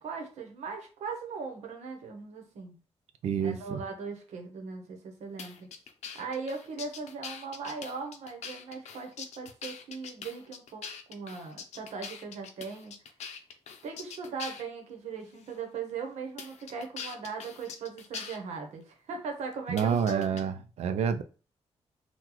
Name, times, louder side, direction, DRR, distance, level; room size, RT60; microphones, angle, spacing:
voice 1, 0.0-2.8 3.4-5.7 6.1-12.9 13.8-20.3, right 5 dB, 85° right, 3 dB, 0.9 m, -39 dB
voice 2, 3.2-3.8 19.7-21.2, right 7 dB, 70° right, 10 dB, 0.4 m, -28 dB
sound 1, 5.4-14.7 15.4-15.5 16.4-18.4 19.8-20.4, left 6 dB, 85° left, 0.5 m, -43 dB
3.8 x 2.3 x 3.0 m, 0.35 s
wide cardioid pair, 175°, 11 cm